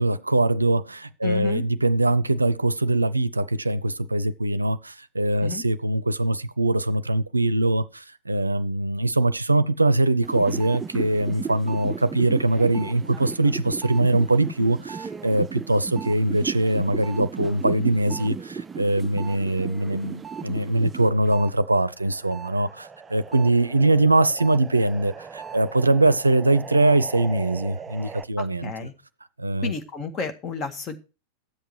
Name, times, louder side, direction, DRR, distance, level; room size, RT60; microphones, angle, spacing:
voice 1, 0.0-28.7 29.4-29.7, right 2 dB, 80° right, 0.6 m, -22 dB
voice 2, 1.2-1.7 5.4-5.7 28.4-28.9 29.6-31.0, left 5 dB, 30° left, 1.8 m, -32 dB
sound 1, 10.2-21.5 21.9-28.2, right 6 dB, 15° right, 0.4 m, -36 dB
11.5 x 7.9 x 4.6 m
figure-of-eight pair, 90°, 0 cm